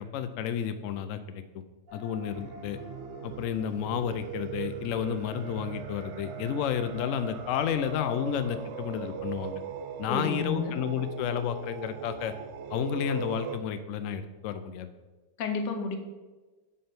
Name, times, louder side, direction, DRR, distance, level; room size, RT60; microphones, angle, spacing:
voice 1, 0.0-1.6 1.9-2.8 3.2-9.6 10.0-12.3 12.7-14.9, left 8 dB, 70° left, 10 dB, 0.7 m, -31 dB
sound 1, 1.9-6.6, left 1 dB, 50° right, 1.8 m, -52 dB
sound 2, 2.3-13.6, right 6 dB, 90° right, 0.6 m, -40 dB
voice 2, 10.1-10.8 15.4-16.0, left 4 dB, 85° left, 6 dB, 1.5 m, -31 dB
5.5 x 5.4 x 5.8 m, 1.3 s
omnidirectional pair, 1.8 m